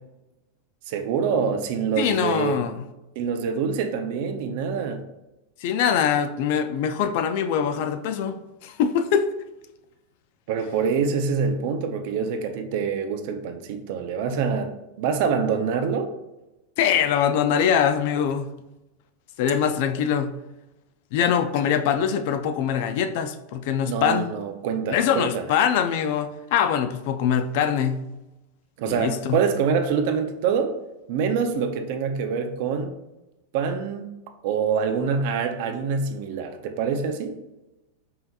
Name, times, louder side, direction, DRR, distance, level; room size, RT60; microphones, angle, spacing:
voice 1, 0.9-2.6 3.2-5.1 10.5-16.1 21.6-21.7 23.8-25.5 28.8-30.7 31.1-32.9 33.5-34.1 34.4-37.4, right 6 dB, 50° right, 7 dB, 0.4 m, -25 dB
voice 2, 2.0-2.7 5.6-9.3 16.8-18.5 19.4-20.3 21.1-24.3 24.9-28.1 28.9-29.4, left 8 dB, 50° left, 8 dB, 0.3 m, -23 dB
5.5 x 2.8 x 2.3 m, 0.98 s
supercardioid pair, 165°, 0 cm